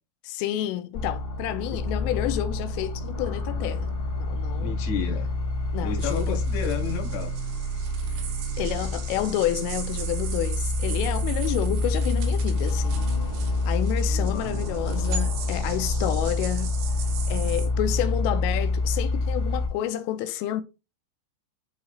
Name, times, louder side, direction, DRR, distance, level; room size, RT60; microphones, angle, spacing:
voice 1, 0.2-3.9 4.2-4.8 5.7-6.4 8.6-13.0 13.7-16.7 17.3-20.6, left 13 dB, 90° left, 3.2 m, -29 dB
sound 1, 0.9-19.7, left 2 dB, 40° left, 2.5 m, -27 dB
voice 2, 4.6-5.3 5.8-7.3 14.1-14.7, left 6 dB, 65° left, 2.2 m, -32 dB
sound 2, 6.0-17.7, right 7 dB, 85° right, 4.0 m, -40 dB
11.0 x 4.1 x 2.4 m
omnidirectional pair, 5.6 m